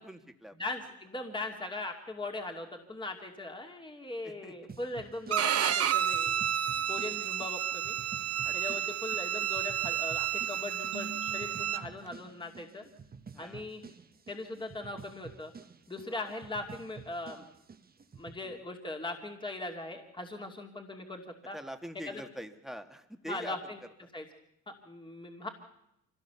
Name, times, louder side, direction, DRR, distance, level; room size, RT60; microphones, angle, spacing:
voice 1, 0.0-0.5 4.2-4.5 6.8-7.2 8.4-8.8 13.3-13.6 16.0-16.3 18.4-18.6 21.5-23.6, equal, ahead, 6 dB, 1.9 m, -45 dB
voice 2, 0.6-6.6 6.9-7.9 8.5-12.8 13.4-13.8 14.3-15.5 15.9-17.4 18.2-21.6 22.1-22.2 23.3-23.8 24.1-24.3 24.7-25.5, left 2 dB, 15° left, 3 dB, 2.6 m, -40 dB
sound 1, 4.7-18.4, right 5 dB, 30° right, 1.4 m, -51 dB
Bowed string instrument, 5.3-11.8, right 10 dB, 55° right, 1.0 m, -31 dB
sound 2, 10.9-13.6, right 4 dB, 75° right, 2.6 m, -49 dB
25.0 x 17.5 x 7.0 m, 0.81 s
cardioid pair, 90°, 30 cm